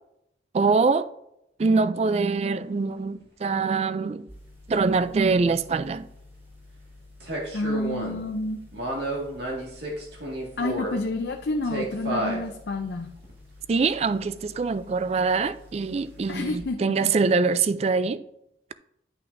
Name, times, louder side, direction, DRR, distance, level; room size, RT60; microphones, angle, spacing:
voice 1, 0.5-1.1 1.6-4.3 4.7-6.1 13.7-18.2, right 4 dB, 35° right, 0.3 m, -24 dB
sound 1, 2.3-2.4 7.2-8.2 8.7-11.0 11.6-12.4 13.2-13.3, right 1 dB, 70° right, 1.9 m, -31 dB
sound 2, 4.3-16.6, left 2 dB, 15° right, 3.1 m, -50 dB
voice 2, 7.5-8.6 10.6-13.1 16.3-16.8 17.0-17.1, left 2 dB, 65° left, 0.5 m, -29 dB
10.5 x 5.9 x 2.6 m
head